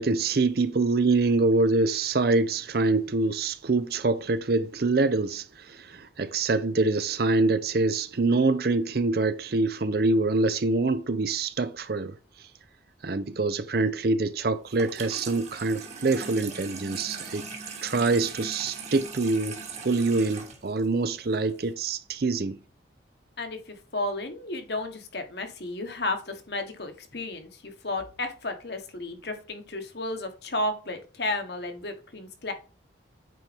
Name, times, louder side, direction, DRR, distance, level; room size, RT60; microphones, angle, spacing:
voice 1, 0.0-12.1 13.0-17.4 17.8-22.6, right 3 dB, 55° right, 0.5 m, -25 dB
Water tap faucet / Sink (filling or washing), 14.7-21.7, right 5 dB, 35° right, 1.5 m, -40 dB
voice 2, 23.4-32.5, left 2 dB, 60° left, 1.5 m, -33 dB
9.2 x 4.3 x 3.4 m
head